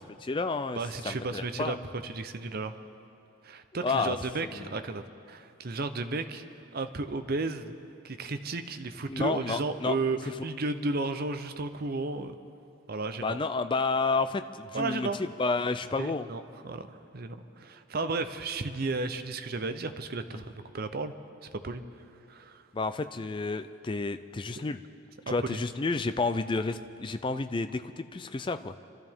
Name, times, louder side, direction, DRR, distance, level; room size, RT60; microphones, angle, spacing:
voice 1, 0.2-0.8 1.0-1.8 3.8-4.1 4.6-4.7 9.1-10.0 13.2-15.1 15.4-16.3 20.3-20.4 22.7-24.8 25.3-28.7, left 3 dB, 25° left, 10 dB, 0.4 m, -30 dB
voice 2, 0.7-1.8 2.0-2.8 3.4-6.4 6.7-7.7 8.0-12.4 12.9-13.4 14.7-15.2 16.0-21.1 21.5-21.8 22.3-22.6 24.6-24.7 25.3-25.6, right 3 dB, 45° right, 9 dB, 0.6 m, -33 dB
25.5 x 13.0 x 3.6 m, 2.6 s
head